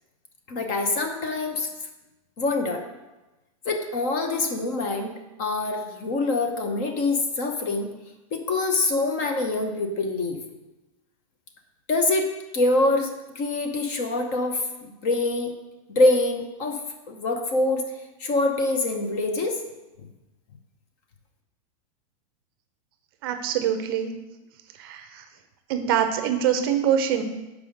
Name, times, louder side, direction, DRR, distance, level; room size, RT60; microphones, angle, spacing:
voice 1, 0.5-1.7 2.4-2.8 3.6-5.1 5.4-7.9 8.3-10.4 11.9-15.5 16.0-16.8 17.1-17.8 18.2-19.6, left 2 dB, 35° left, 5 dB, 0.8 m, -25 dB
voice 2, 23.2-24.1 24.7-25.2 25.7-27.2, right 9 dB, 40° right, 7 dB, 0.6 m, -24 dB
5.5 x 4.9 x 6.4 m, 1.1 s
supercardioid pair, 180°, 18 cm